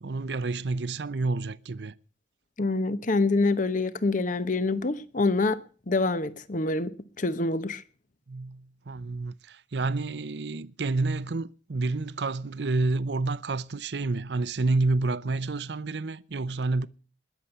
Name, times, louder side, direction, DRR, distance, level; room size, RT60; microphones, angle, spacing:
voice 1, 0.0-1.9 8.3-16.9, right 3 dB, 70° right, 0.7 m, -29 dB
voice 2, 2.6-5.6 5.9-7.8, left 3 dB, 50° left, 1.0 m, -26 dB
21.0 x 7.1 x 7.8 m
head